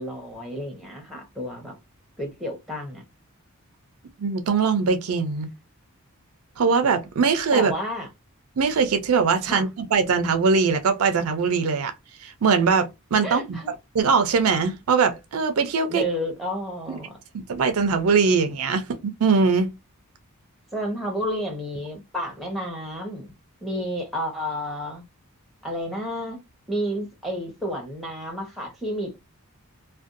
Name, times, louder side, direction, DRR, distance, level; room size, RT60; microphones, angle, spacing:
voice 1, 0.0-1.7 2.2-3.0 7.5-8.1 9.5-9.7 13.2-13.7 15.9-17.1 20.7-23.3 23.6-25.0 25.6-26.4 26.7-29.2, equal, ahead, 0.8 m, -31 dB
voice 2, 4.2-5.5 6.6-7.7 8.6-11.9 12.2-13.6 13.9-16.0 16.9-17.0 17.3-19.7, right 5 dB, 75° right, 0.4 m, -21 dB
2.5 x 2.2 x 2.5 m
head